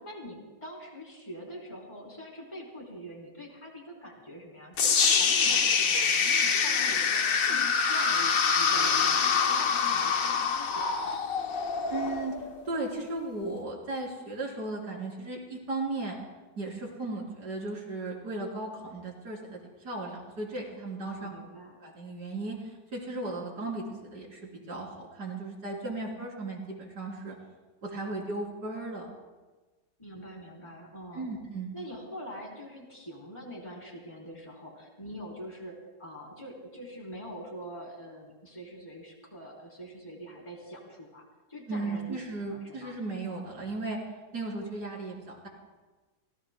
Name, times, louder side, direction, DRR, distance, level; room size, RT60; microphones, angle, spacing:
voice 1, 0.0-11.3 21.0-21.7 30.0-31.3 31.7-43.0, equal, 15° left, -2 dB, 3.6 m, -44 dB
sound 1, 4.8-12.8, left 6 dB, 55° left, 1.3 m, -25 dB
voice 2, 11.9-12.3 12.7-16.2 16.6-21.3 21.8-24.4 24.7-27.4 27.8-29.1 31.1-31.7 41.7-44.0 44.3-45.5, right 2 dB, 65° right, -1 dB, 4.0 m, -36 dB
29.5 x 18.0 x 2.2 m, 1.2 s
omnidirectional pair, 1.9 m